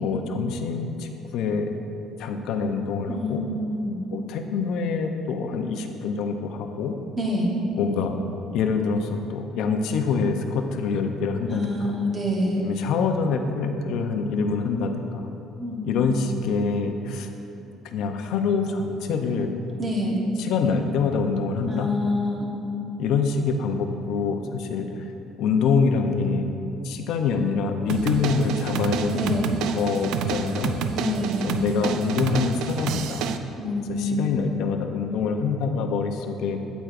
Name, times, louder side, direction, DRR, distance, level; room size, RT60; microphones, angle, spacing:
voice 1, 0.0-1.7 2.2-3.4 4.1-6.9 7.8-8.1 8.5-11.9 12.6-15.3 15.8-17.3 17.8-19.5 20.4-21.9 23.0-24.9 25.4-26.5 26.8-30.8 31.4-33.3 33.9-36.6, left 5 dB, 65° left, 5 dB, 0.6 m, -25 dB
voice 2, 3.1-4.0 7.2-7.5 11.5-12.6 15.6-16.2 19.8-20.2 21.7-22.5 29.1-29.4 30.9-31.5 33.6-34.3, left 1 dB, 25° right, -2 dB, 1.1 m, -27 dB
sound 1, 27.9-33.4, right 6 dB, 70° right, 0.3 m, -29 dB
8.8 x 8.1 x 2.5 m, 2.9 s
cardioid pair, 155°, 0 cm